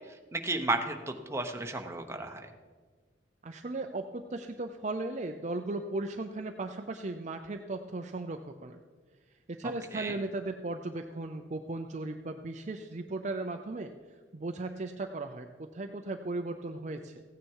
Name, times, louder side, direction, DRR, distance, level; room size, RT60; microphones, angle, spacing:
voice 1, 0.0-2.5 9.6-10.2, right 2 dB, 15° right, 4 dB, 1.0 m, -34 dB
voice 2, 3.4-8.8 9.5-13.9 14.3-17.2, right 2 dB, 40° right, 5 dB, 0.5 m, -37 dB
15.5 x 9.4 x 4.7 m, 1.5 s
head